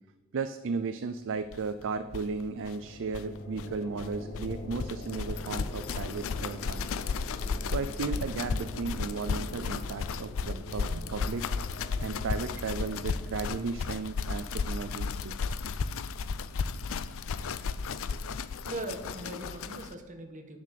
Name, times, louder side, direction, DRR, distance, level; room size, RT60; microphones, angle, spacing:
voice 1, 0.3-6.9 7.7-11.5 12.0-15.6, right 4 dB, 60° right, 11 dB, 0.4 m, -35 dB
sound 1, 1.5-1.6 1.8-1.9 2.1-19.9, left 5 dB, 65° left, 0.5 m, -34 dB
sound 2, 2.4-15.8, left 1 dB, 45° left, 3.4 m, -45 dB
voice 2, 18.6-20.6, right 1 dB, 35° right, 4 dB, 1.2 m, -40 dB
8.5 x 7.1 x 6.5 m, 1.1 s
head